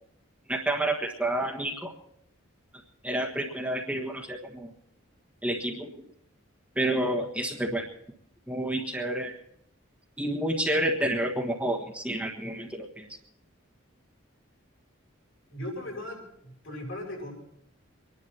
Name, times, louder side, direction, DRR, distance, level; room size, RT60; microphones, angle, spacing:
voice 1, 0.5-1.9 3.0-4.7 5.4-5.9 6.7-7.9 8.5-9.3 10.2-13.1, right 1 dB, 5° right, -1 dB, 1.4 m, -29 dB
voice 2, 15.5-17.3, left 1 dB, 70° left, 0 dB, 7.8 m, -38 dB
25.0 x 11.0 x 4.4 m, 0.71 s
head